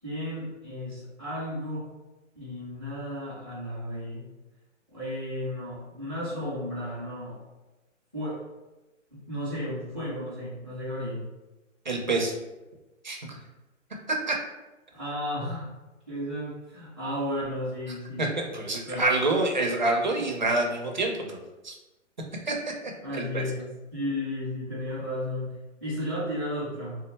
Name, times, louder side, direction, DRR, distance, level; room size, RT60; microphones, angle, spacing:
voice 1, 0.0-1.9 2.3-4.2 4.9-7.4 8.1-8.4 9.1-11.3 14.9-15.7 16.1-18.4 18.9-19.2 23.0-27.0, left 1 dB, 10° left, -13 dB, 0.6 m, -33 dB
voice 2, 11.9-12.3 13.0-13.2 14.1-14.3 18.2-21.7 22.5-22.6 23.1-23.4, right 2 dB, 40° right, 1 dB, 0.4 m, -27 dB
3.3 x 2.1 x 4.1 m, 1.1 s
hypercardioid pair, 180°, 38 cm